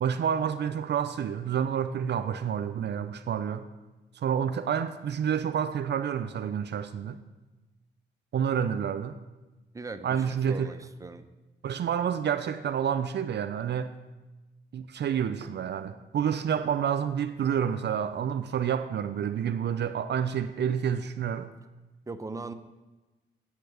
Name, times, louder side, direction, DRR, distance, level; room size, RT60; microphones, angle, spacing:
voice 1, 0.0-3.7 4.1-7.2 8.3-9.2 10.0-10.8 11.6-14.0 14.7-21.5, right 8 dB, 60° right, 10 dB, 0.4 m, -29 dB
voice 2, 9.7-11.2 22.1-22.5, right 3 dB, 15° right, 9 dB, 0.6 m, -39 dB
8.4 x 4.5 x 6.6 m, 1.1 s
cardioid pair, 55°, 20 cm